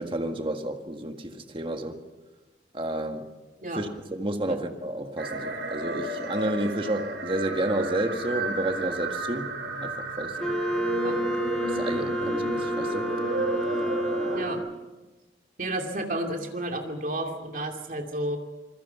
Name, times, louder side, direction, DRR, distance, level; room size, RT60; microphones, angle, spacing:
voice 1, 0.0-2.0 2.7-3.3 3.7-10.6 11.6-13.1, right 1 dB, 30° right, 5 dB, 1.8 m, -31 dB
sound 1, 5.2-14.5, right 2 dB, 80° right, 3.6 m, -32 dB
Wind instrument woodwind instrument, 10.4-14.7, equal, 5° left, 2.2 m, -30 dB
voice 2, 15.6-18.4, right 1 dB, 50° right, 3 dB, 2.6 m, -31 dB
26.5 x 21.0 x 5.8 m, 1.2 s
head